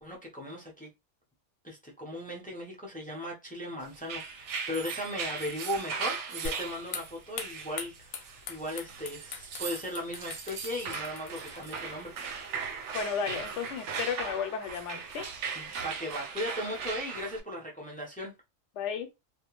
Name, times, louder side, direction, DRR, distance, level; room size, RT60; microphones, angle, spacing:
voice 1, 0.0-0.9 1.6-12.1 15.6-18.3, equal, 10° left, 0.5 m, -37 dB
sound 1, 3.9-17.4, right 5 dB, 70° right, 0.8 m, -38 dB
sound 2, 6.4-13.0, left 5 dB, 85° left, 1.0 m, -44 dB
voice 2, 12.9-15.3 18.7-19.1, left 7 dB, 65° left, 0.9 m, -33 dB
2.4 x 2.2 x 3.0 m
omnidirectional pair, 1.4 m